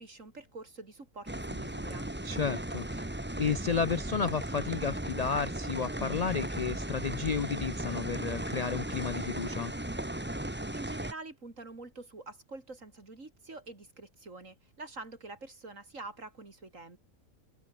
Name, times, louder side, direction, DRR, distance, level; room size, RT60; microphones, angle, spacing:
voice 1, 0.0-2.1 10.7-17.0, right 3 dB, 65° right, 4.5 m, -46 dB
sound 1, 1.3-11.1, right 1 dB, 10° right, 1.5 m, -36 dB
voice 2, 2.2-3.1 3.4-9.7, left 6 dB, 85° left, 0.3 m, -32 dB
open air
omnidirectional pair, 1.5 m